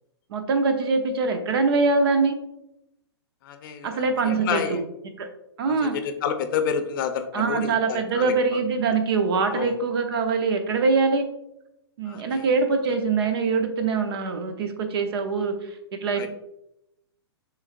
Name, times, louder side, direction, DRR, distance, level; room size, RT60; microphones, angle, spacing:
voice 1, 0.3-2.4 3.8-4.8 5.2-5.3 5.6-6.0 7.3-11.3 12.0-15.7 16.0-16.3, right 4 dB, 60° right, 6 dB, 0.8 m, -23 dB
voice 2, 3.4-4.8 5.7-8.6 9.5-9.7 12.1-12.5 16.1-16.3, left 7 dB, 50° left, 8 dB, 0.6 m, -29 dB
6.4 x 3.3 x 2.5 m, 0.83 s
hypercardioid pair, 130°, 14 cm